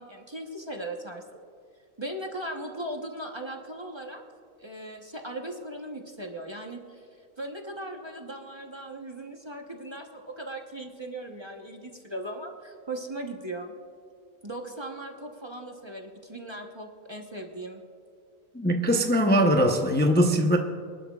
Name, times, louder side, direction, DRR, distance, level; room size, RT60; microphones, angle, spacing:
voice 1, 0.0-1.4 2.0-4.2 4.6-13.7 14.4-17.8, right 1 dB, 20° right, 1 dB, 0.9 m, -38 dB
voice 2, 18.5-20.6, equal, 10° left, 3 dB, 0.4 m, -21 dB
25.5 x 11.5 x 2.4 m, 2.3 s
omnidirectional pair, 1.6 m